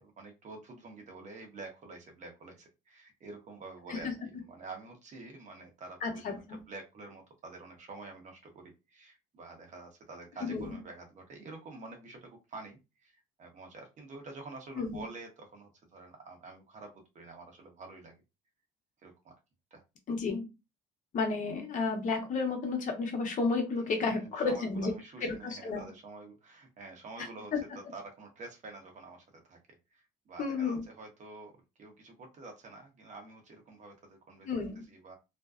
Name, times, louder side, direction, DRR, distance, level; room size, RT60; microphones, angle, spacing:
voice 1, 0.0-4.1 4.5-18.1 19.0-19.3 19.7-19.8 24.1-27.5 27.9-29.6 29.9-34.5 34.9-35.1, right 3 dB, 45° right, 3 dB, 0.9 m, -48 dB
voice 2, 6.0-6.6 10.4-10.7 14.7-15.0 20.1-20.5 21.1-24.9 25.2-25.8 27.5-27.6 30.4-30.8 34.4-34.8, left 4 dB, 50° left, 3 dB, 0.8 m, -32 dB
2.5 x 2.2 x 2.3 m, 0.26 s
cardioid pair, 110°, 17 cm